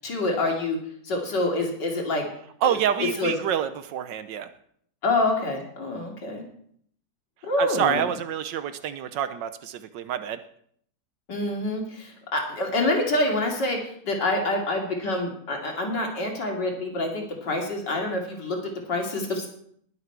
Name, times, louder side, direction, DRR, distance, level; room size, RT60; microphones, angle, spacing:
voice 1, 0.0-0.8 1.0-2.3 2.6-2.8 3.2-3.3 5.0-6.4 7.4-8.1 11.3-19.5, left 2 dB, 75° left, 1 dB, 3.3 m, -27 dB
voice 2, 2.6-4.5 7.6-10.4, right 9 dB, 80° right, 11 dB, 1.5 m, -27 dB
21.0 x 7.9 x 4.6 m, 0.65 s
omnidirectional pair, 1.9 m